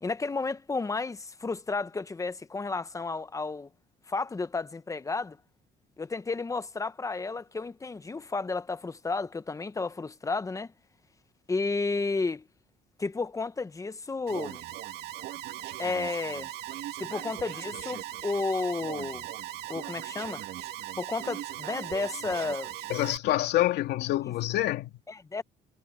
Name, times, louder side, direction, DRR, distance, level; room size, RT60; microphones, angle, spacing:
voice 1, 0.0-3.7 4.1-5.4 6.0-10.7 11.5-12.4 13.0-14.6 15.8-16.5 17.0-19.3 19.7-20.4 21.0-22.7 24.2-24.3 25.1-25.4, left 3 dB, 20° left, 1.1 m, -32 dB
Alarm, 14.3-23.2, right 13 dB, 75° right, 2.2 m, -38 dB
voice 2, 22.9-24.9, left 15 dB, 80° left, 2.7 m, -27 dB
cardioid pair, 110°, 17 cm